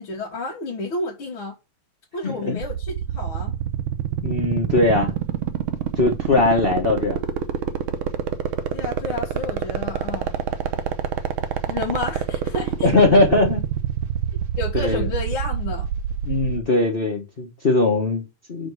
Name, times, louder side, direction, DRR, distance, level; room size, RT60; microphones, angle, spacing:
voice 1, 0.0-1.6 2.1-3.5 8.7-10.3 11.7-12.9 14.6-15.9, left 3 dB, 90° left, 2.5 m, -30 dB
voice 2, 2.2-2.6 4.2-5.1 6.0-7.2 12.8-13.6 14.7-15.1 16.2-18.7, left 2 dB, 35° left, 1.2 m, -20 dB
sound 1, 2.6-16.6, right 10 dB, 90° right, 1.7 m, -25 dB
5.2 x 5.2 x 6.4 m
omnidirectional pair, 2.2 m